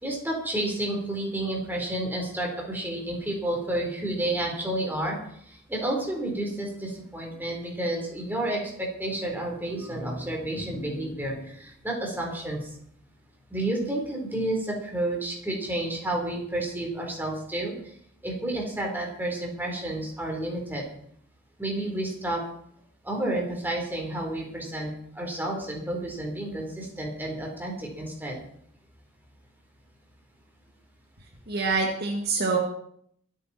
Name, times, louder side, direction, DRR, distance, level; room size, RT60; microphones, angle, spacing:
voice 1, 0.0-5.2 5.4-12.7 13.5-17.9 18.2-20.8 21.6-22.4 23.0-28.4, right 1 dB, 10° right, -1 dB, 4.1 m, -30 dB
voice 2, 31.5-32.6, right 4 dB, 45° right, 0 dB, 2.0 m, -25 dB
24.5 x 9.3 x 4.5 m, 0.67 s
head